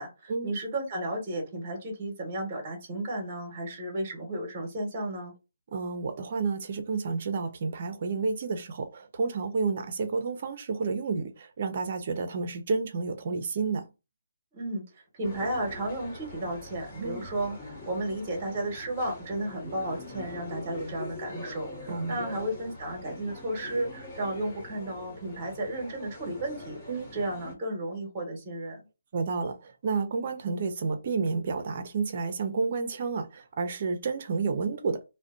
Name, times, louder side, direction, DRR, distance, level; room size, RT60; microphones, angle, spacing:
voice 1, 0.0-5.3 14.5-14.8 15.2-26.8 27.1-28.8, right 1 dB, 25° right, 1.1 m, -33 dB
voice 2, 5.7-13.9 17.0-17.3 21.9-22.2 26.9-27.1 29.1-35.0, right 4 dB, 45° right, 0.5 m, -30 dB
sound 1, 15.2-27.5, left 2 dB, 30° left, 1.1 m, -43 dB
2.4 x 2.1 x 2.4 m
hypercardioid pair, 155°, 0 cm